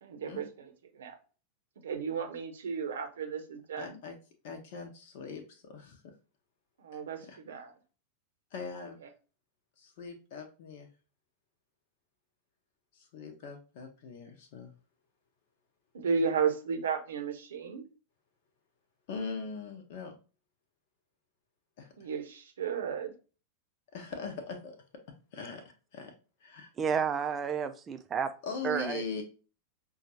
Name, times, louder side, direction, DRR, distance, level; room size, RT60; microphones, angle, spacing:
voice 1, 0.0-1.1 1.8-4.0 6.8-7.7 15.9-17.9 22.0-23.1, right 6 dB, 65° right, 5 dB, 0.8 m, -34 dB
voice 2, 3.8-4.2 4.4-6.1 6.9-7.4 8.5-9.0 9.8-10.9 12.9-14.7 19.1-20.2 21.8-22.1 23.9-24.7 25.3-25.6 25.9-26.1 26.4-26.7 28.4-29.2, left 4 dB, 50° left, 4 dB, 0.9 m, -41 dB
voice 3, 26.8-28.3 28.6-29.0, right 7 dB, 25° right, 8 dB, 0.4 m, -31 dB
5.5 x 2.4 x 2.8 m, 0.35 s
figure-of-eight pair, 90°, 0 cm